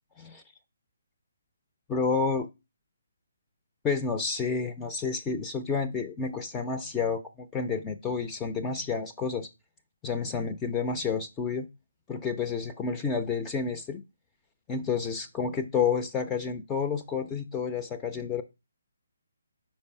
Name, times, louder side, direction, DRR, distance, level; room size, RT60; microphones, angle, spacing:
voice 1, 1.9-2.5 3.8-9.5 10.0-11.7 12.1-14.0 14.7-18.4, left 5 dB, 15° left, 0.5 m, -30 dB
5.2 x 4.4 x 4.7 m
figure-of-eight pair, 140°, 0 cm